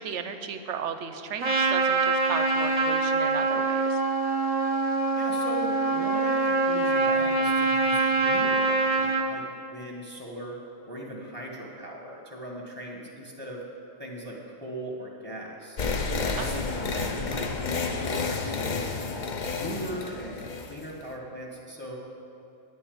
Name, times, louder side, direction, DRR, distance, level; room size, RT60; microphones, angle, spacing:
voice 1, 0.0-4.0 16.4-16.6, right 7 dB, 65° right, 8 dB, 0.9 m, -35 dB
Trumpet, 1.4-9.3, right 3 dB, 30° right, 0.9 m, -24 dB
voice 2, 5.1-9.4 9.7-10.6 10.8-13.6 14.0-15.8 16.3-18.3 18.5-19.1 19.5-22.0, right 1 dB, 10° left, -1 dB, 1.4 m, -39 dB
sound 1, 15.8-21.0, left 4 dB, 45° left, 0.7 m, -30 dB
9.4 x 7.1 x 8.5 m, 2.7 s
omnidirectional pair, 1.4 m